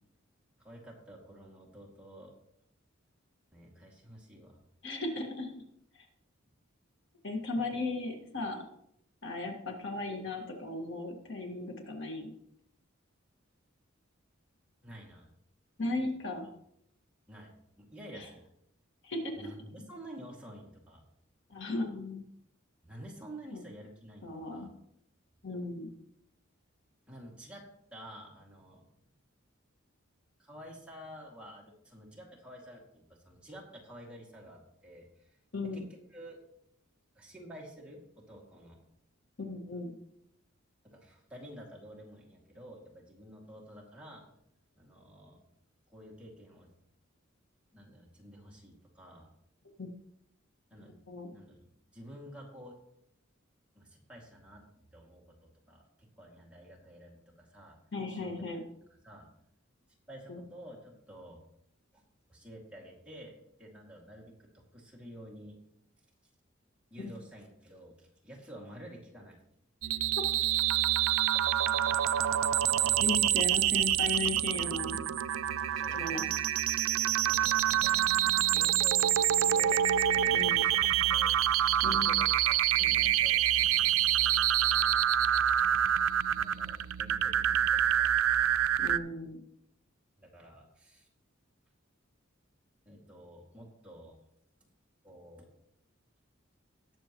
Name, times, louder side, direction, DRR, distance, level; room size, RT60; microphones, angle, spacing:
voice 1, 0.6-2.3 3.5-4.6 14.8-15.3 17.3-17.5 17.8-18.4 19.4-21.0 22.8-24.7 27.1-28.8 30.4-35.4 35.7-36.4 37.1-38.8 40.8-44.2 44.8-45.4 45.9-46.7 47.7-49.3 50.7-50.9 51.3-52.8 53.7-57.8 58.1-58.6 58.9-59.3 60.1-61.4 61.9-62.0 62.3-65.6 66.9-69.4 72.6-73.0 75.8-76.2 77.2-78.0 78.5-84.0 86.3-88.1 90.2-91.1 92.9-94.2 95.0-95.5, equal, 5° right, -3 dB, 2.2 m, -50 dB
voice 2, 4.8-5.5 5.9-6.0 7.2-8.6 9.2-12.3 15.8-16.5 18.1-18.2 19.0-19.5 21.5-22.3 23.5-23.6 24.2-24.7 25.4-25.9 35.5-35.8 39.4-39.9 49.8-49.9 51.1-51.3 57.9-58.6 60.3-60.4 67.0-67.1 73.0-75.0 75.9-76.2 80.3-80.6 81.8-82.1 88.8-89.4, left 2 dB, 65° left, 2 dB, 1.7 m, -36 dB
sound 1, 69.8-89.0, right 11 dB, 90° right, 0.4 m, -27 dB
19.0 x 6.8 x 3.0 m, 0.75 s
head